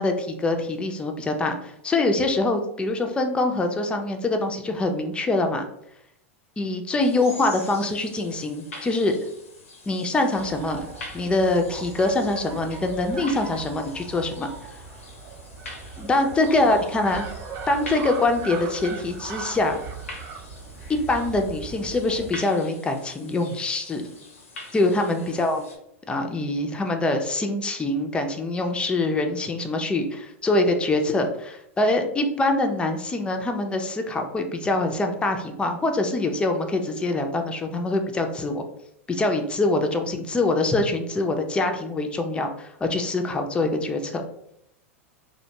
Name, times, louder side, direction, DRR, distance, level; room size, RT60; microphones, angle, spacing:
voice 1, 0.0-5.7 6.6-9.2 9.9-10.9 11.1-14.5 16.0-17.2 17.7-19.7 20.9-24.0 24.7-25.6 26.1-38.7 39.1-44.2, left 2 dB, 15° left, 5 dB, 0.4 m, -24 dB
sound 1, 7.0-25.8, left 2 dB, 80° left, 0.6 m, -44 dB
sound 2, 10.4-22.3, right 5 dB, 45° right, 0.5 m, -39 dB
2.4 x 2.2 x 2.8 m, 0.75 s
hypercardioid pair, 95°, 8 cm